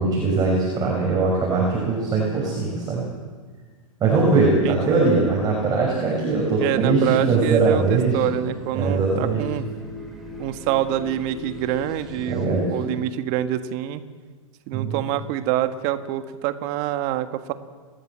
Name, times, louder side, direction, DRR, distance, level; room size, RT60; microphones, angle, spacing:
voice 1, 0.0-3.0 4.0-8.3 8.7-9.5 11.5-11.6 12.3-12.9 14.7-15.1, right 3 dB, 20° right, -3 dB, 6.2 m, -21 dB
sound 1, 4.6-12.5, left 3 dB, ahead, 4.3 m, -41 dB
voice 2, 4.6-5.2 6.6-9.7 10.4-14.0 14.7-17.5, right 12 dB, 40° right, 9 dB, 1.7 m, -26 dB
29.5 x 13.5 x 7.6 m, 1.4 s
hypercardioid pair, 120°, 18 cm